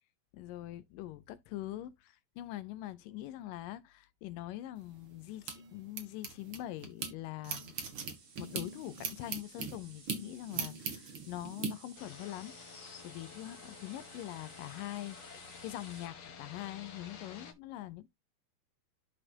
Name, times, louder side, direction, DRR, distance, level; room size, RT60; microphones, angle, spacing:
voice 1, 0.3-7.7 8.4-12.6 13.0-18.1, left 14 dB, 80° left, 2.1 m, -43 dB
sound 1, 4.8-7.1 7.4-11.7, right 6 dB, 50° right, 1.8 m, -40 dB
sound 2, 7.7-16.1, right 4 dB, 80° right, 5.6 m, -57 dB
sound 3, 12.0-17.5, left 6 dB, 55° left, 1.4 m, -51 dB
12.0 x 4.3 x 2.8 m
omnidirectional pair, 4.2 m